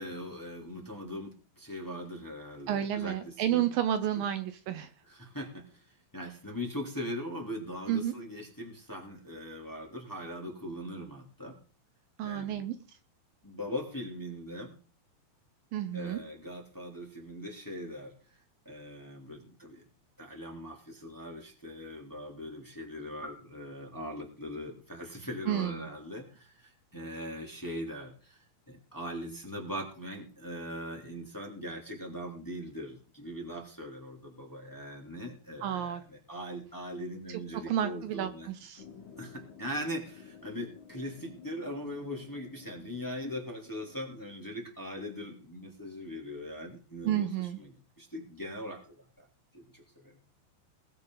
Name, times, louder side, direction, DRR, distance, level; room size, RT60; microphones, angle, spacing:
voice 1, 0.0-3.7 4.1-4.2 5.1-5.9 6.1-11.6 12.2-12.7 13.4-14.8 15.9-18.1 18.6-19.8 20.2-28.4 28.7-38.5 39.2-47.7 48.0-49.3 49.5-50.2, equal, 5° left, 0 dB, 2.7 m, -40 dB
voice 2, 2.7-4.9 7.9-8.1 12.2-12.7 15.7-16.2 25.5-25.9 35.6-36.0 37.7-38.8 47.0-47.6, right 11 dB, 75° right, 9 dB, 2.4 m, -31 dB
sound 1, 38.8-44.1, left 7 dB, 55° left, 3.8 m, -52 dB
20.5 x 8.6 x 4.0 m, 0.37 s
omnidirectional pair, 4.3 m